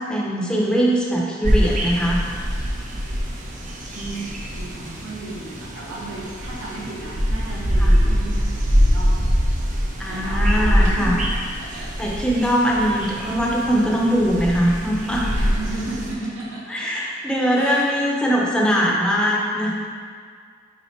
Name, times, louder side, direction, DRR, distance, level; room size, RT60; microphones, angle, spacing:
voice 1, 0.0-2.2 7.8-7.9 10.0-11.2 11.7-15.2 16.7-19.7, equal, 5° left, -4 dB, 0.8 m, -21 dB
sipi falls morning, 1.4-16.1, equal, 40° right, 0.7 m, -23 dB
voice 2, 3.8-9.2 10.1-11.2 11.6-11.9 15.3-16.8 17.5-19.4, right 2 dB, 75° right, -6 dB, 1.5 m, -34 dB
5.7 x 4.0 x 4.4 m, 2.1 s
head